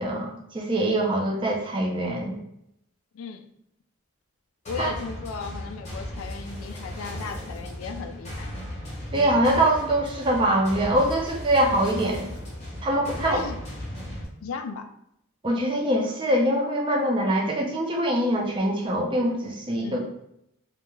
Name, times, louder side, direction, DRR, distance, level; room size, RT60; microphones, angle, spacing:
voice 1, 0.0-2.4 4.8-4.9 9.1-12.3 12.8-13.5 15.4-20.0, right 1 dB, 25° right, 0 dB, 0.4 m, -23 dB
voice 2, 3.1-3.4 4.7-8.5 13.2-13.6 14.4-14.9 19.8-20.1, left 5 dB, 80° left, 8 dB, 0.3 m, -36 dB
sound 1, 4.7-14.3, equal, 30° left, 0.7 m, -36 dB
2.2 x 2.1 x 3.0 m, 0.77 s
head